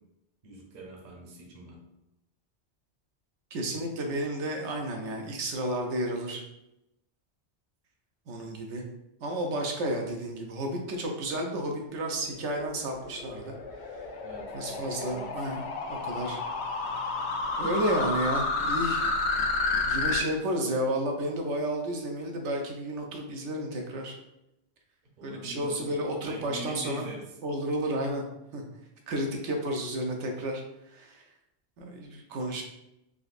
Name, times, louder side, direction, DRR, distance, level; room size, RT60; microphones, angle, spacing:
voice 1, 0.4-1.8 14.2-15.3 25.2-26.0 26.2-27.3, right 2 dB, 45° right, -1 dB, 0.7 m, -43 dB
voice 2, 3.5-6.4 8.3-8.8 9.2-13.5 14.5-16.4 17.6-19.1 19.8-24.1 25.2-27.1 27.4-28.2 28.5-28.6 29.1-30.6 30.9-31.2 31.8-32.6, right 1 dB, 80° right, 2 dB, 0.9 m, -32 dB
sound 1, 12.2-20.2, left 3 dB, 70° left, 0.8 m, -31 dB
3.8 x 2.5 x 2.4 m, 0.87 s
omnidirectional pair, 1.2 m